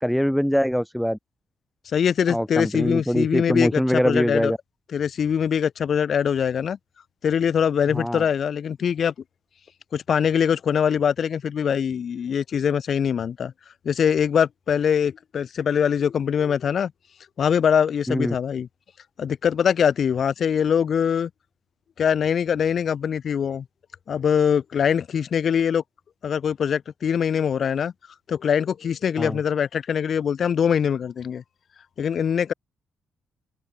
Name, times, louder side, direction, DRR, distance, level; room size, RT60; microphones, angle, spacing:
voice 1, 0.0-1.2 2.3-4.6 7.9-8.2 18.1-18.3 29.2-29.4, equal, ahead, 0.9 m, -23 dB
voice 2, 1.9-4.5 4.9-6.8 7.2-9.1 9.9-13.5 13.8-16.9 17.4-18.7 19.2-21.3 22.0-23.7 24.1-25.8 26.2-27.9 28.3-31.4 32.0-32.5, left 7 dB, 55° left, 0.6 m, -23 dB
cardioid pair, 90°, 0 cm